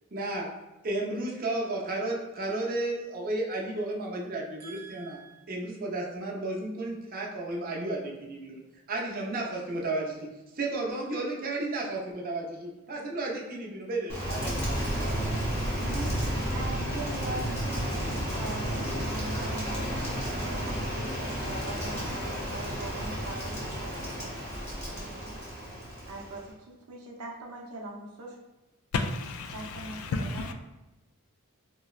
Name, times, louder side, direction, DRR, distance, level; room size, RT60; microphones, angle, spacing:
voice 1, 0.1-0.5 0.8-5.2 5.5-8.6 8.9-10.3 10.5-15.3, right 2 dB, 40° right, -2 dB, 0.5 m, -33 dB
voice 2, 4.6-5.5 15.8-20.0 20.3-24.6 24.9-25.5 26.0-28.4 29.5-30.5, right 2 dB, 85° right, -1 dB, 0.6 m, -42 dB
Rain, 14.1-26.5, equal, 10° left, 0.8 m, -32 dB
voice 3, 28.9-30.5, left 3 dB, 70° left, 6 dB, 0.3 m, -32 dB
3.8 x 2.0 x 2.3 m, 1.0 s
head